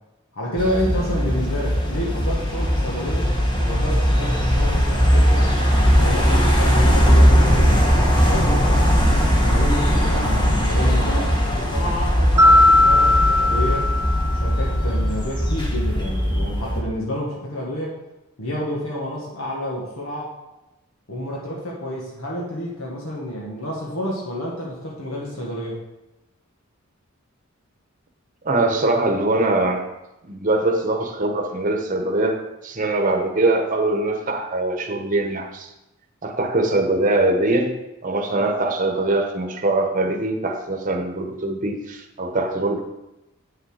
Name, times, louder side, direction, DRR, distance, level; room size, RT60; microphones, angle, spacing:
voice 1, 0.3-3.3 3.6-5.4 6.0-8.7 9.3-11.3 11.6-13.9 14.3-18.0 18.4-20.3 21.1-25.8, equal, 70° left, -4 dB, 1.7 m, -29 dB
sound 1, 0.6-16.8, equal, 20° left, 1.3 m, -19 dB
Mallet percussion, 12.4-14.8, left 2 dB, 15° right, 0.5 m, -17 dB
voice 2, 28.4-29.9 30.2-35.7 36.2-42.8, right 2 dB, 35° right, 3 dB, 1.1 m, -22 dB
8.4 x 6.6 x 4.9 m, 0.95 s
head